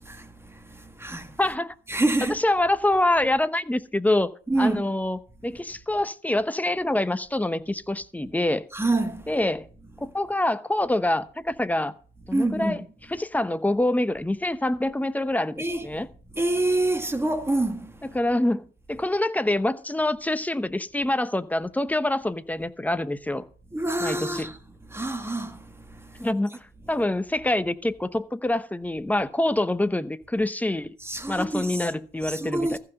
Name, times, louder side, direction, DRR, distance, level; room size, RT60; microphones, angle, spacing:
voice 1, 1.4-1.7 2.3-4.3 4.6-8.7 9.3-9.7 10.0-11.9 12.3-12.8 13.1-16.1 18.0-23.4 24.0-24.5 26.2-30.9 31.3-32.8, left 1 dB, 10° left, 0.8 m, -26 dB
voice 2, 1.9-2.4 4.5-4.9 8.7-9.2 12.3-12.8 15.6-15.9 16.4-17.9 23.7-24.6 24.9-25.6 31.0-31.8 32.2-32.8, right 2 dB, 10° right, 1.6 m, -26 dB
14.5 x 5.9 x 6.4 m
cardioid pair, 90°, 20 cm